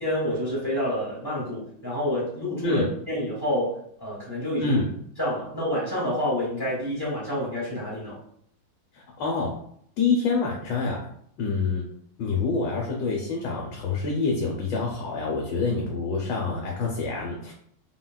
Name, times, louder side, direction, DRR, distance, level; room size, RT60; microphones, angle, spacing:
voice 1, 0.0-4.8 5.2-8.2, left 1 dB, 15° left, -6 dB, 0.9 m, -28 dB
voice 2, 8.9-9.5 10.0-11.1 11.4-11.8 12.2-17.5, left 4 dB, 75° left, -1 dB, 1.2 m, -26 dB
3.9 x 2.1 x 2.2 m, 0.66 s
omnidirectional pair, 2.1 m